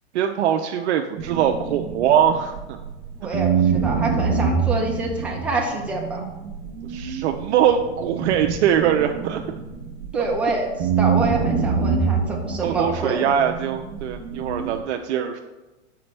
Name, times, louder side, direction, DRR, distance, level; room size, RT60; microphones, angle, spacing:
voice 1, 0.1-2.8 6.9-9.4 12.6-15.4, right 9 dB, 75° right, 4 dB, 0.5 m, -22 dB
sound 1, 1.2-2.9 3.3-10.4 10.8-14.8, right 6 dB, 50° right, 0.8 m, -25 dB
voice 2, 3.2-6.2 10.1-10.7 11.0-13.2, right 2 dB, 5° right, -2 dB, 0.7 m, -26 dB
5.8 x 5.1 x 3.2 m, 1.1 s
supercardioid pair, 145°, 34 cm